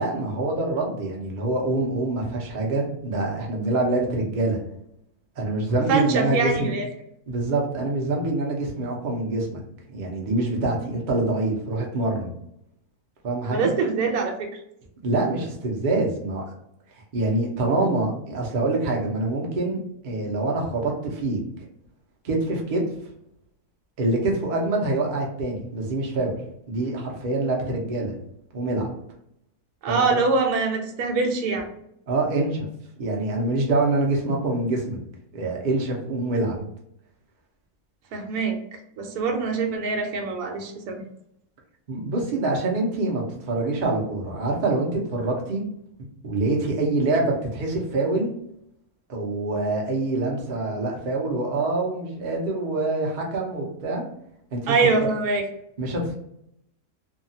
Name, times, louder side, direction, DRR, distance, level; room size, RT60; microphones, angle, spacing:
voice 1, 0.0-4.6 5.4-6.7 7.3-9.6 9.9-12.3 13.2-13.7 15.0-16.4 17.1-19.8 20.0-21.4 22.2-22.8 24.0-26.3 26.7-28.1 28.5-28.9 29.9-30.2 32.1-32.7 33.0-35.0 35.3-36.7 41.9-45.7 46.2-48.3 49.1-54.1 54.5-54.8 55.8-56.1, right 2 dB, 50° right, -1 dB, 0.5 m, -25 dB
voice 2, 5.9-6.9 13.5-14.6 29.8-31.7 38.1-41.0 54.7-55.5, right 4 dB, 75° right, 3 dB, 1.1 m, -24 dB
2.7 x 2.3 x 2.6 m, 0.76 s
omnidirectional pair, 1.7 m